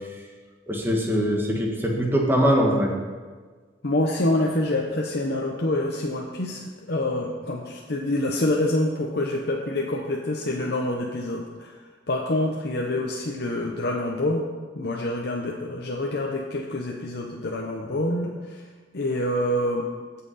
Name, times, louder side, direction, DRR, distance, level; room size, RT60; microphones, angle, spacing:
voice 1, 0.7-2.9, equal, 15° right, -1 dB, 1.5 m, -22 dB
voice 2, 3.8-11.7 12.1-14.5 14.7-18.6 18.9-19.9, left 1 dB, 60° left, -1 dB, 0.9 m, -26 dB
16.0 x 5.8 x 4.2 m, 1.4 s
head